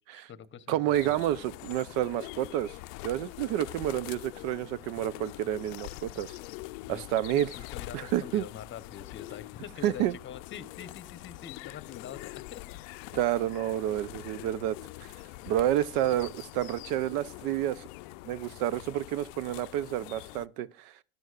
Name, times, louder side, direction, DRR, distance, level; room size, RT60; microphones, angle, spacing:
voice 1, 0.1-1.2 6.8-12.8 15.4-15.7, left 9 dB, 30° left, 0.8 m, -45 dB
voice 2, 0.7-2.8 3.0-6.4 6.9-7.5 7.9-8.4 9.8-10.1 13.1-15.1 15.5-17.8 18.3-20.9, right 12 dB, 70° right, 0.6 m, -29 dB
sound 1, 0.9-20.5, left 20 dB, 70° left, 0.5 m, -44 dB
13.5 x 10.5 x 2.4 m
supercardioid pair, 90°, 40 cm